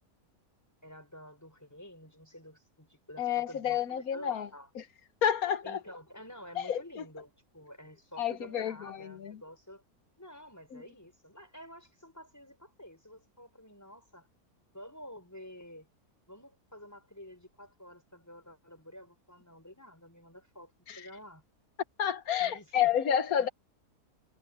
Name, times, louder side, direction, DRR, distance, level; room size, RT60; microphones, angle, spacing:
voice 1, 0.8-4.7 5.6-9.8 10.2-14.3 14.7-15.9 16.3-21.4 22.4-23.2, equal, 10° left, 5.4 m, -50 dB
voice 2, 3.2-4.5 5.2-5.8 6.6-7.0 8.2-9.4 10.7-10.8 20.9-21.0 22.0-23.5, left 9 dB, 70° left, 1.5 m, -30 dB
omnidirectional pair, 1.6 m